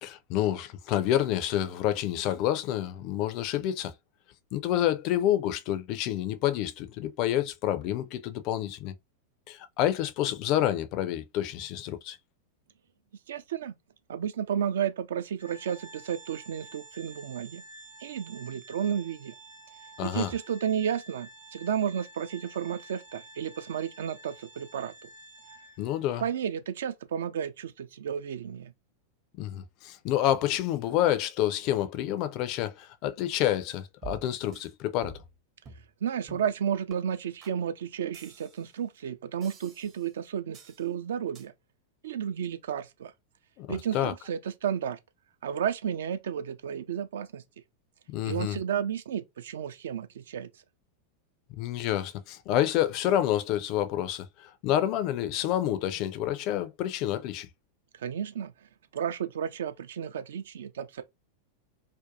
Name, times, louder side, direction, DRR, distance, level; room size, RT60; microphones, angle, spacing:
voice 1, 0.0-3.9 4.5-8.9 9.5-12.2 20.0-20.3 25.8-26.2 29.4-35.2 43.6-44.1 48.1-48.6 51.5-57.5, left 12 dB, 40° left, 0.4 m, -28 dB
voice 2, 13.3-13.7 14.1-17.6 18.0-19.3 20.0-25.1 26.2-28.7 36.0-41.5 42.0-43.1 43.7-45.0 45.4-47.4 48.2-50.5 58.0-58.5 58.9-61.0, right 8 dB, 60° right, 0.4 m, -32 dB
Organ, 15.4-26.0, right 2 dB, 90° right, 0.9 m, -50 dB
sound 1, 34.0-34.7 35.0-35.4 35.6-35.9 36.3-36.5 36.9-37.0 37.4-37.6 38.1-38.8 39.4-40.1 40.5-40.8 41.3-41.5, right 6 dB, 30° right, 0.7 m, -48 dB
2.5 x 2.2 x 2.6 m
figure-of-eight pair, 90°, 0 cm